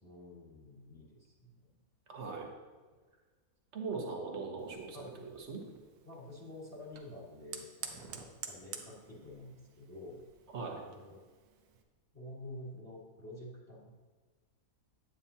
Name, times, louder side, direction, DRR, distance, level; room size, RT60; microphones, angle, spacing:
voice 1, 0.0-1.8 2.4-2.5 4.9-5.1 6.0-10.2 10.9-11.2 12.1-13.9, left 1 dB, 10° left, -4 dB, 1.8 m, -49 dB
voice 2, 2.1-2.5 3.7-5.6 10.5-10.8, right 4 dB, 50° right, 1 dB, 1.5 m, -40 dB
Fire, 4.6-11.8, right 7 dB, 80° right, 1.3 m, -50 dB
9.3 x 8.8 x 2.8 m, 1.4 s
omnidirectional pair, 1.6 m